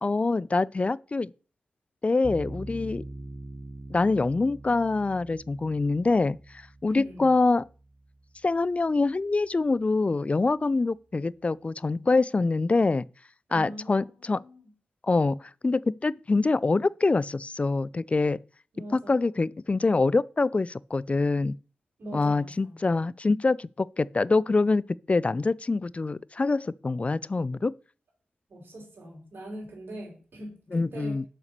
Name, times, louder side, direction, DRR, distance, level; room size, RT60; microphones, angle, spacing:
voice 1, 0.0-1.3 2.0-3.0 3.9-7.6 8.4-13.0 13.5-14.4 15.0-18.4 18.9-21.6 22.1-24.8 25.1-27.7 30.7-31.2, left 3 dB, 35° left, 0.3 m, -25 dB
sound 1, 2.2-9.3, right 2 dB, 25° right, 1.9 m, -43 dB
voice 2, 6.9-7.3 13.5-14.6 18.7-19.3 22.0-22.8 28.5-31.2, right 1 dB, 70° right, 4.2 m, -42 dB
6.7 x 5.9 x 6.6 m
cardioid pair, 45°, 4 cm